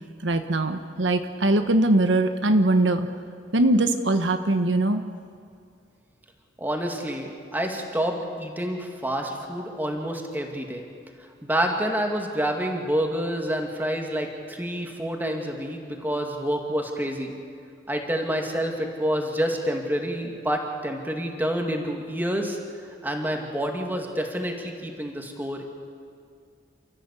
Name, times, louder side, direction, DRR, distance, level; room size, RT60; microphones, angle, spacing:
voice 1, 0.2-3.1 3.5-5.0, right 2 dB, 75° right, 7 dB, 1.2 m, -21 dB
voice 2, 6.6-10.8 11.4-17.3 17.9-22.6 23.0-25.6, equal, 10° right, 2 dB, 2.4 m, -28 dB
29.0 x 14.5 x 8.4 m, 2.2 s
head